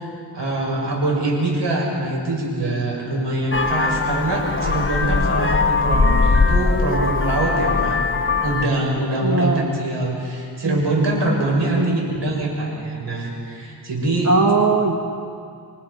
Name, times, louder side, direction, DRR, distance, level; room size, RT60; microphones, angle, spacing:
voice 1, 0.0-8.0 8.4-14.3, right 2 dB, 80° right, -1 dB, 6.5 m, -23 dB
Vehicle horn car horn honking, 3.5-8.7, left 4 dB, 30° left, 1.3 m, -20 dB
voice 2, 5.9-6.2 9.2-9.7 10.6-10.8 11.7-12.0 14.3-15.0, right 3 dB, 40° right, 2 dB, 1.6 m, -20 dB
28.5 x 23.5 x 5.6 m, 2.3 s
wide cardioid pair, 90°, 42 cm